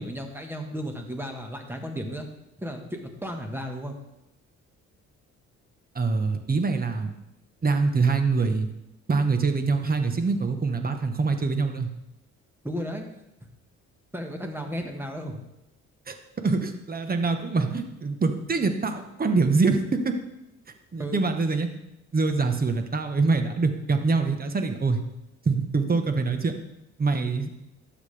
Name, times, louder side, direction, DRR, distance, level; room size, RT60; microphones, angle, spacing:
voice 1, 0.0-2.3 2.6-3.9 12.6-13.1 14.1-15.4 21.0-21.2, equal, 5° right, 3 dB, 1.5 m, -34 dB
voice 2, 5.9-7.1 7.6-8.7 9.1-11.9 16.1-16.2 16.4-20.1 20.9-21.7 22.1-25.0 25.4-26.5 27.0-27.5, right 4 dB, 30° right, 6 dB, 1.2 m, -24 dB
12.0 x 7.4 x 3.4 m, 0.87 s
cardioid pair, 90°, 30 cm